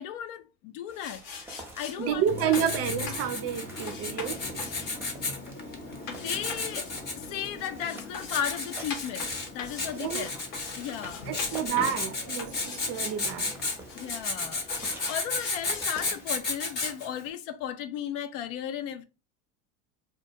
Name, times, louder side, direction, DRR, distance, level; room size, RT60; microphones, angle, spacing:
voice 1, 0.0-2.5 6.1-6.9 7.2-10.4 10.7-11.3 13.9-14.7 15.1-19.0, left 9 dB, 70° left, 0.5 m, -35 dB
sound 1, 0.9-16.4, right 1 dB, 5° right, 0.7 m, -49 dB
sound 2, 1.0-2.0 2.5-2.7 3.1-3.3 3.9-10.8 11.0-12.0 12.4-14.3 14.7-16.1, left 5 dB, 85° left, 0.9 m, -42 dB
voice 2, 2.0-4.4 10.0-10.3 11.3-13.6, right 9 dB, 40° right, 0.4 m, -30 dB
Writing, 2.3-17.2, left 3 dB, 25° left, 0.7 m, -34 dB
2.2 x 2.2 x 2.8 m
supercardioid pair, 110°, 38 cm